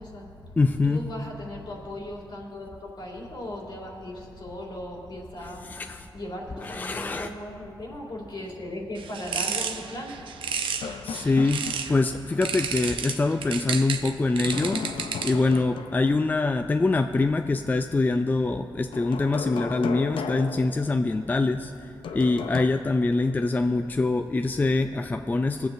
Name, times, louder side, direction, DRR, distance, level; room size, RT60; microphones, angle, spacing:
voice 1, 0.0-0.6 0.8-11.3, left 1 dB, 60° left, -2 dB, 2.3 m, -38 dB
voice 2, 0.6-1.1 5.7-6.1 6.6-7.3 11.0-25.7, left 3 dB, 20° left, 7 dB, 0.3 m, -24 dB
sound 1, 9.0-12.0 12.4-15.6, right 6 dB, 90° right, 0.6 m, -32 dB
sound 2, 10.8-12.3 12.6-12.7 14.3-16.3 18.9-21.4 22.0-22.6, left 6 dB, 85° left, 0.5 m, -35 dB
21.0 x 7.8 x 2.6 m, 2.4 s
cardioid pair, 80°, 9 cm